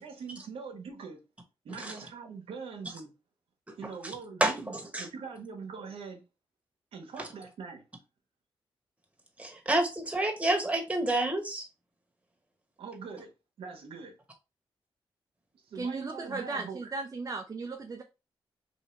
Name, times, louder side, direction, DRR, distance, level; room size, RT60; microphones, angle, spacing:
voice 1, 0.0-1.2 1.6-3.1 3.8-6.2 6.9-7.8 12.8-13.3 13.6-14.1 15.5-16.9, right 5 dB, 85° right, 0.9 m, -43 dB
voice 2, 3.7-4.1 4.4-5.1 9.4-11.7, right 1 dB, 15° right, 1.3 m, -29 dB
voice 3, 15.8-18.0, right 3 dB, 35° right, 0.6 m, -36 dB
2.8 x 2.7 x 4.3 m
cardioid pair, 60°, 10 cm